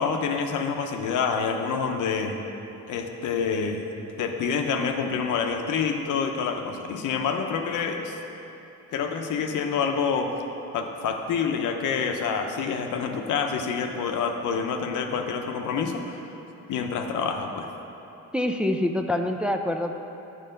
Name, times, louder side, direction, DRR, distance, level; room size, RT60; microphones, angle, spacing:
voice 1, 0.0-2.4 2.9-3.8 4.2-8.2 8.9-10.3 10.7-16.0 16.7-17.7, left 6 dB, 80° left, 4 dB, 0.8 m, -27 dB
voice 2, 18.3-19.9, left 1 dB, 5° right, 4 dB, 0.4 m, -25 dB
7.6 x 4.9 x 6.6 m, 2.9 s
cardioid pair, 90°, 30 cm